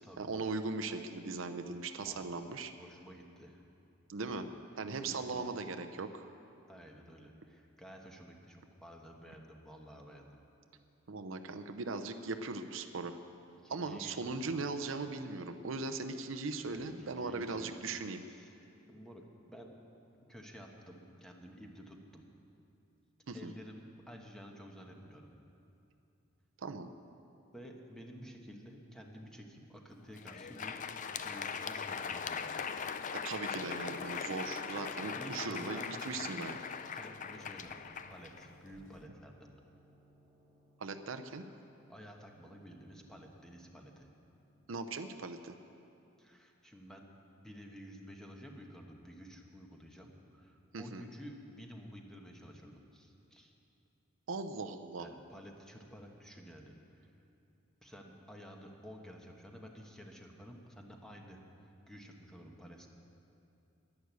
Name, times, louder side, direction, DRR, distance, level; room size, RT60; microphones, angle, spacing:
voice 1, 0.2-2.7 4.1-4.5 4.8-6.3 11.1-13.2 13.7-18.2 23.3-23.5 26.6-26.9 33.1-36.6 40.8-41.4 44.7-45.5 50.7-51.1 54.3-55.1, right 3 dB, 70° right, 7 dB, 0.7 m, -39 dB
voice 2, 2.8-3.6 4.2-4.5 4.9-5.5 6.7-10.4 13.6-14.5 16.6-17.8 18.3-18.6 18.9-19.8 20.3-22.3 23.3-23.8 24.1-25.3 27.5-32.7 35.0-36.0 36.9-39.5 41.9-44.1 46.2-47.1 47.4-53.5 55.0-57.1 57.8-62.9, equal, 5° left, 1 dB, 1.2 m, -52 dB
Crowd, 30.0-39.0, left 6 dB, 40° left, 0.5 m, -40 dB
Gong, 33.5-45.5, left 1 dB, 20° right, 1.2 m, -57 dB
11.0 x 11.0 x 8.2 m, 2.7 s
head